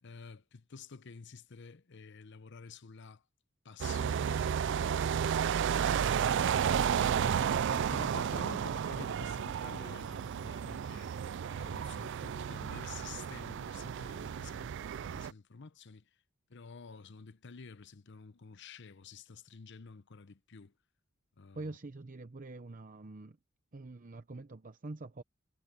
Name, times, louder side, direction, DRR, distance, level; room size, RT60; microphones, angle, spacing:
voice 1, 0.0-3.2 3.6-6.3 6.9-16.1 16.5-20.7 21.4-21.8, left 4 dB, 60° left, 0.8 m, -50 dB
sound 1, 3.8-15.3, right 8 dB, 60° right, 0.3 m, -32 dB
voice 2, 21.5-23.4 23.7-25.2, right 2 dB, 40° right, 0.7 m, -45 dB
head